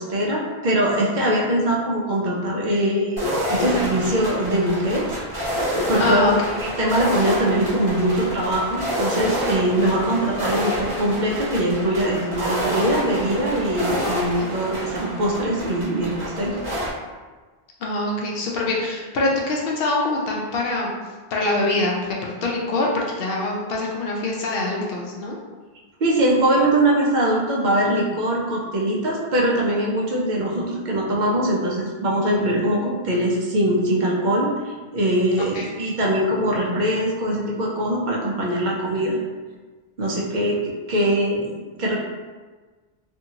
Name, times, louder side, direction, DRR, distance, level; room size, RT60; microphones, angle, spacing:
voice 1, 0.0-3.2 3.5-5.1 5.9-6.3 6.6-16.6 26.0-39.2 40.0-41.5 41.8-42.0, right 1 dB, 55° right, -3 dB, 0.7 m, -22 dB
sound 1, 3.2-16.9, equal, 35° right, 1.1 m, -28 dB
voice 2, 6.0-6.5 14.4-14.5 17.8-20.9 21.3-25.4 35.5-35.8, left 2 dB, 70° left, -2 dB, 0.7 m, -24 dB
2.7 x 2.6 x 2.7 m, 1.3 s
omnidirectional pair, 1.0 m